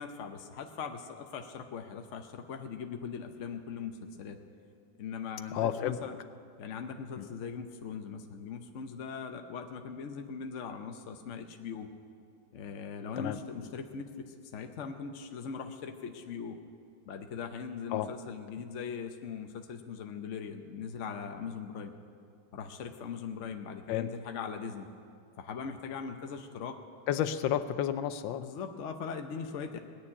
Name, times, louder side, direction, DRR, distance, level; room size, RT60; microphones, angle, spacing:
voice 1, 0.0-4.4 5.0-6.1 6.6-11.9 12.5-16.6 17.1-21.9 22.5-24.9 25.4-26.8 28.4-29.8, left 6 dB, 55° left, 6 dB, 0.9 m, -40 dB
voice 2, 5.5-6.0 7.2-7.3 13.2-13.4 17.9-18.1 23.9-24.1 27.1-28.4, left 10 dB, 90° left, 11 dB, 1.4 m, -31 dB
19.0 x 7.1 x 9.8 m, 2.3 s
omnidirectional pair, 2.0 m